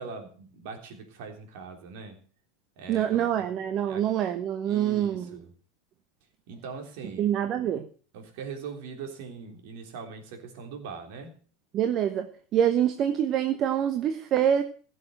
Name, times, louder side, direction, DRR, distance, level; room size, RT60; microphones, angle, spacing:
voice 1, 0.0-2.2 2.8-3.4 3.8-4.1 4.6-5.5 6.5-7.3 8.1-11.3, right 5 dB, 55° right, 3.5 m, -41 dB
voice 2, 2.9-5.3 7.2-7.9 11.7-14.6, right 10 dB, 40° right, 1.1 m, -25 dB
16.5 x 6.7 x 7.8 m
figure-of-eight pair, 85°, 0 cm